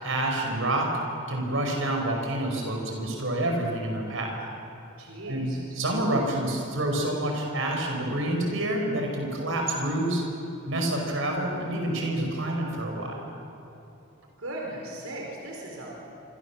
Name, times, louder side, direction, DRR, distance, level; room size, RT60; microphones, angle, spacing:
voice 1, 0.0-1.0 1.3-4.4 5.3-10.2 10.7-13.2, right 1 dB, 65° right, 1 dB, 5.3 m, -28 dB
voice 2, 5.0-5.6 14.4-15.9, right 1 dB, 80° right, -2 dB, 4.6 m, -37 dB
27.0 x 25.5 x 7.4 m, 2.8 s
head